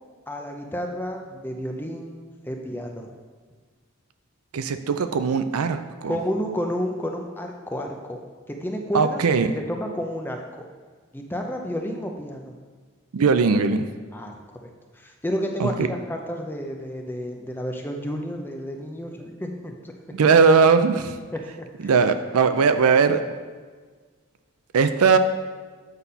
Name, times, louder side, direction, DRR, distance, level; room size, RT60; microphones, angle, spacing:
voice 1, 0.3-3.1 6.1-8.2 8.5-9.2 9.5-10.7 11.1-12.5 14.1-14.7 14.9-19.9 21.6-21.9, equal, 10° left, 3 dB, 0.6 m, -31 dB
voice 2, 4.5-6.2 8.9-9.5 13.1-13.9 15.6-15.9 20.1-21.2 21.8-23.2 24.7-25.2, right 5 dB, 85° right, 10 dB, 0.5 m, -19 dB
8.0 x 4.2 x 5.5 m, 1.5 s
head